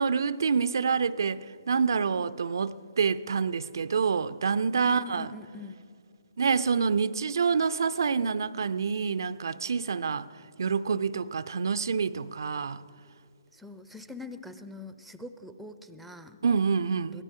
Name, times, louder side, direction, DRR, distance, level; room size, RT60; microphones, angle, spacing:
voice 1, 0.0-5.3 6.4-10.3 10.6-12.8 16.4-17.2, right 5 dB, 70° right, 0.4 m, -27 dB
voice 2, 4.8-5.8 13.5-16.4 17.1-17.2, left 3 dB, ahead, 0.6 m, -43 dB
23.0 x 17.0 x 3.7 m
hypercardioid pair, 145°, 2 cm